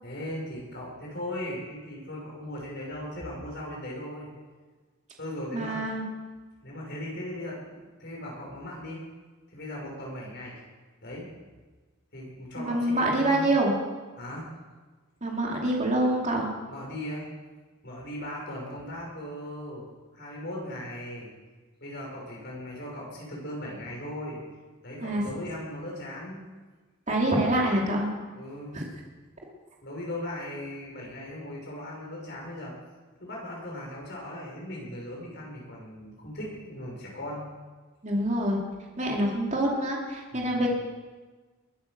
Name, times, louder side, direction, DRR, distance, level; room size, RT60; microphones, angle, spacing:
voice 1, 0.0-4.3 5.2-5.8 6.6-9.0 9.5-10.6 11.0-11.2 12.1-13.5 14.2-14.4 16.7-17.3 17.8-19.9 20.1-21.3 21.8-24.4 24.8-26.4 28.3-28.8 29.8-32.7 33.2-37.4 40.3-40.6, left 1 dB, 55° left, -2 dB, 6.1 m, -38 dB
voice 2, 5.5-6.0 12.6-13.7 15.2-16.5 25.0-25.2 27.1-28.1 28.7-28.8 38.0-38.6 39.0-40.7, right 1 dB, 35° right, -2 dB, 2.6 m, -26 dB
21.5 x 9.3 x 6.7 m, 1.3 s
head